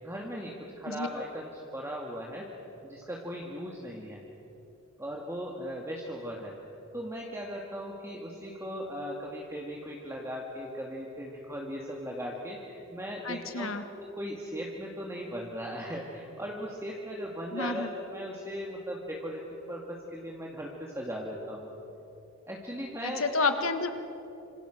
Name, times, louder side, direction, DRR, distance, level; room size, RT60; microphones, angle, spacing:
voice 1, 0.0-2.5 2.8-4.2 5.0-6.6 6.9-19.4 19.7-21.7 22.5-23.2, equal, 15° right, -2 dB, 2.2 m, -38 dB
voice 2, 13.2-13.9 17.5-17.9 23.0-23.9, left 3 dB, 75° left, 8 dB, 1.7 m, -30 dB
26.5 x 26.5 x 6.6 m, 3.0 s
head